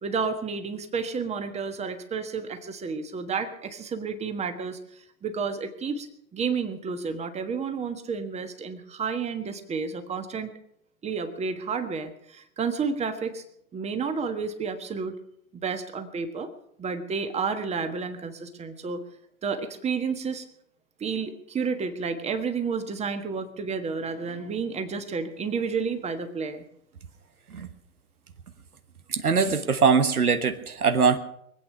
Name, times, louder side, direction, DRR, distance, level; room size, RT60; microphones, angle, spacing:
voice 1, 0.0-4.8 5.2-6.1 6.3-10.5 11.0-13.4 13.7-15.1 15.6-16.5 16.8-19.0 19.4-20.4 21.0-26.6, right 5 dB, 15° right, 8 dB, 1.4 m, -31 dB
voice 2, 29.1-31.2, right 5 dB, 80° right, 10 dB, 1.4 m, -22 dB
23.5 x 8.7 x 5.9 m, 0.74 s
figure-of-eight pair, 105°, 44 cm